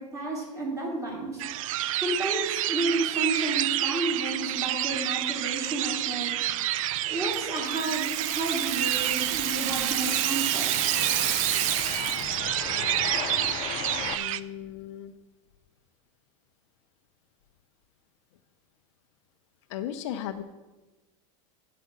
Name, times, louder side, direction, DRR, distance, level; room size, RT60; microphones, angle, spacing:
voice 1, 0.0-1.4 2.0-6.3 7.0-10.7, right 2 dB, 20° right, -2 dB, 2.8 m, -31 dB
sound 1, 1.4-14.4, right 14 dB, 85° right, 0.4 m, -29 dB
Rattle (instrument), 7.3-12.4, right 11 dB, 40° right, 0.6 m, -30 dB
sound 2, 7.5-14.2, left 12 dB, 30° left, 0.4 m, -38 dB
voice 2, 9.1-9.5 14.1-15.1 19.7-20.4, left 10 dB, 60° left, 8 dB, 0.7 m, -37 dB
9.4 x 5.0 x 7.3 m, 1.1 s
supercardioid pair, 155°, 17 cm